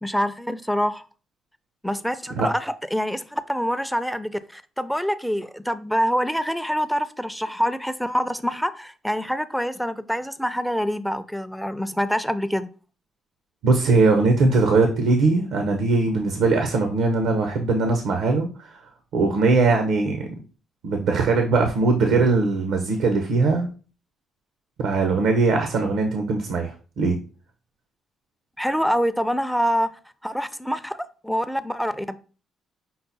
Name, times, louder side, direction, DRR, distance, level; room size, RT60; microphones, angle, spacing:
voice 1, 0.0-1.0 1.8-12.7 28.6-29.9 30.2-31.0 31.2-32.2, equal, ahead, 0.4 m, -25 dB
voice 2, 13.6-18.8 19.1-20.3 20.8-23.7 24.8-27.2, right 3 dB, 85° right, 0.6 m, -20 dB
5.6 x 2.1 x 4.0 m
cardioid pair, 90°, 0 cm